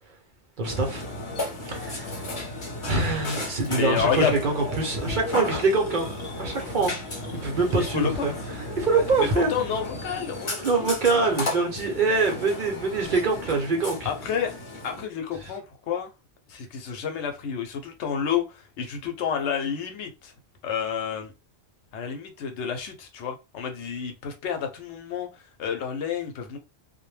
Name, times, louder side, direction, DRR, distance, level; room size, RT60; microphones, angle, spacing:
Burping eructation, 0.6-15.1, left 1 dB, 30° left, 0.6 m, -34 dB
voice 1, 0.6-1.1 1.6-2.2 2.8-6.1 6.4-6.9 7.4-8.3 8.8-9.5 10.6-14.1 15.4-15.5, right 3 dB, 50° right, 0.7 m, -24 dB
voice 2, 3.8-4.4 7.8-8.3 8.9-10.9 11.3-11.4 14.0-14.5 14.8-16.1 16.5-20.3 20.6-21.3 21.9-25.3 25.6-26.6, left 7 dB, 85° left, 0.9 m, -29 dB
2.2 x 2.1 x 3.1 m
omnidirectional pair, 1.1 m